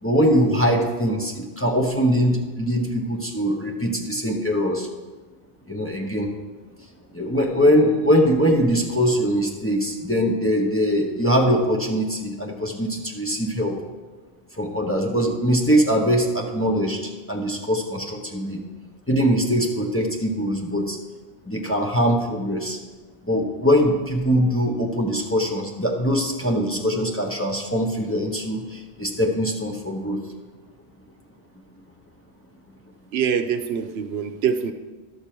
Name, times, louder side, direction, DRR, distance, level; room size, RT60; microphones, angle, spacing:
voice 1, 0.0-4.9 5.7-6.3 7.1-13.8 14.6-18.6 19.1-21.0 21.5-22.8 23.2-30.2, equal, 15° left, -1 dB, 0.9 m, -22 dB
voice 2, 33.1-34.7, right 7 dB, 75° right, 9 dB, 0.8 m, -24 dB
12.0 x 6.7 x 4.4 m, 1.3 s
omnidirectional pair, 1.1 m